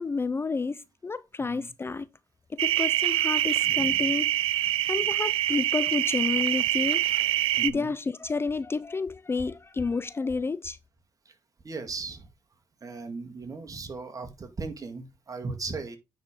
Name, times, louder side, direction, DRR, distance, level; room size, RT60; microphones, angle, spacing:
voice 1, 0.0-2.1 2.5-4.3 4.6-7.0 7.6-10.8, left 4 dB, 25° left, 0.4 m, -30 dB
voice 2, 1.4-1.7 7.6-7.9 11.3-11.4 11.6-12.3 12.8-16.0, right 4 dB, 40° right, 1.9 m, -37 dB
sound 1, 2.6-7.7, right 14 dB, 75° right, 0.3 m, -25 dB
9.4 x 4.4 x 3.7 m
supercardioid pair, 65°, 9 cm